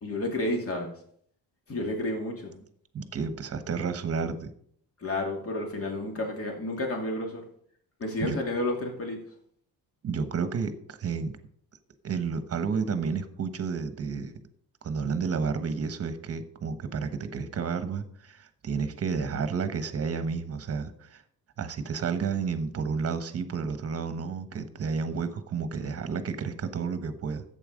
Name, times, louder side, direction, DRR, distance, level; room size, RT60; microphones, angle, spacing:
voice 1, 0.0-0.9 1.7-2.6 5.0-7.4 8.0-9.2, left 1 dB, 35° left, 1 dB, 2.6 m, -31 dB
voice 2, 2.9-4.5 8.2-8.4 10.0-11.4 12.0-14.3 14.8-21.2 21.6-27.4, right 5 dB, 40° right, 10 dB, 1.3 m, -31 dB
11.0 x 8.2 x 5.1 m, 0.64 s
cardioid pair, 120°, 38 cm